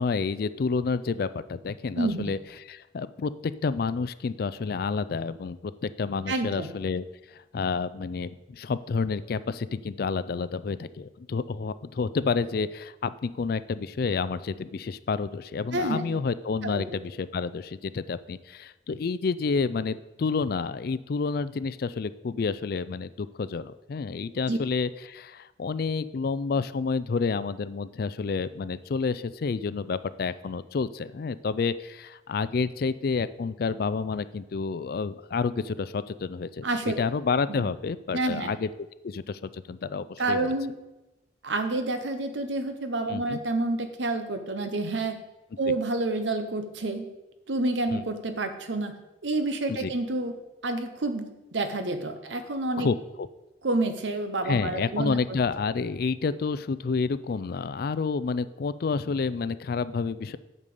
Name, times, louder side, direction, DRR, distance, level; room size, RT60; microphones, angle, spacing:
voice 1, 0.0-2.4 2.7-7.0 7.3-36.7 37.0-38.7 39.0-40.5 43.1-43.4 47.9-48.0 49.7-49.9 52.8-53.3 54.4-60.4, left 4 dB, 55° left, 15 dB, 0.4 m, -29 dB
voice 2, 1.9-2.3 6.3-6.7 15.7-16.2 16.6-16.9 24.5-24.6 36.6-37.0 37.5-37.6 38.1-38.5 40.2-40.7 41.4-45.2 45.6-47.1 47.5-48.9 49.2-50.3 50.6-52.9 53.6-55.2, right 2 dB, 85° right, 8 dB, 1.0 m, -28 dB
8.2 x 5.4 x 7.0 m, 1.0 s
head